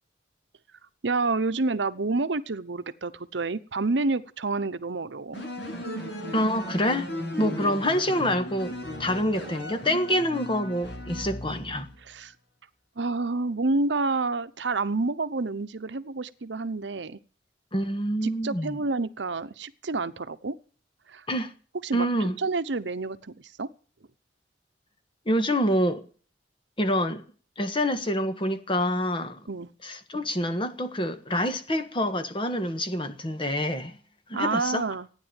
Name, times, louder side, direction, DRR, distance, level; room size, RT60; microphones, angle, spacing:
voice 1, 1.0-5.4 7.4-7.7 12.0-12.3 13.0-17.2 18.2-20.5 21.1-21.3 21.8-22.1 22.4-23.7 29.5-29.7 34.3-35.1, right 3 dB, 75° right, 0.9 m, -29 dB
sound 1, 5.3-12.0, left 1 dB, 75° left, 7.9 m, -36 dB
voice 2, 6.3-7.1 7.4-11.9 17.7-18.8 21.3-21.5 21.9-22.4 25.2-26.0 26.8-27.2 27.6-29.4 29.8-34.0 34.3-34.8, equal, 30° left, 1.5 m, -26 dB
15.5 x 9.9 x 9.0 m
head